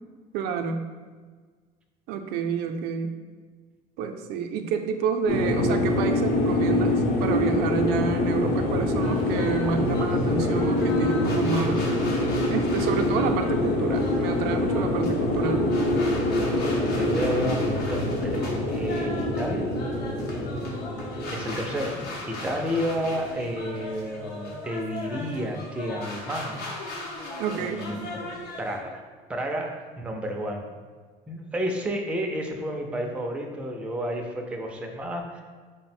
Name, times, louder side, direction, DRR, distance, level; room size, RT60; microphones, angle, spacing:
voice 1, 0.3-0.9 2.1-3.1 4.0-11.9 12.5-15.7 27.4-27.9, right 6 dB, 85° right, 5 dB, 0.4 m, -29 dB
sound 1, 5.3-23.7, left 1 dB, 60° left, 0.7 m, -25 dB
sound 2, 9.0-28.8, left 2 dB, 85° left, 0.8 m, -39 dB
voice 2, 16.6-19.7 21.3-22.0 22.2-26.6 27.6-28.2 28.6-29.0 29.3-30.7 31.3-35.4, equal, 5° right, 1 dB, 0.3 m, -31 dB
3.9 x 2.1 x 4.1 m, 1.5 s
cardioid pair, 150°, 16 cm